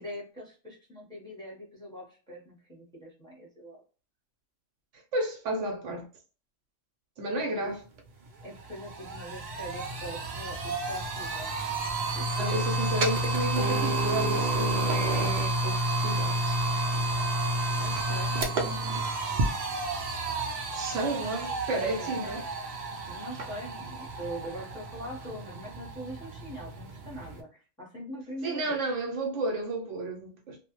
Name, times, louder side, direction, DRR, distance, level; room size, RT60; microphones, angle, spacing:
voice 1, 0.0-3.8 7.4-7.7 8.4-11.5 12.1-12.3 12.7-13.0 17.7-19.0 19.3-19.6 21.9-22.4 23.1-28.8, equal, 5° left, 0.8 m, -43 dB
voice 2, 5.1-6.1 7.2-7.8 11.2-11.3 12.4-15.8 16.0-16.6 20.7-22.4 28.4-30.6, right 2 dB, 75° right, 0.9 m, -32 dB
sound 1, 8.0-8.1 8.4-27.4, right 2 dB, 60° right, 0.5 m, -30 dB
2.4 x 2.0 x 2.9 m
omnidirectional pair, 1.3 m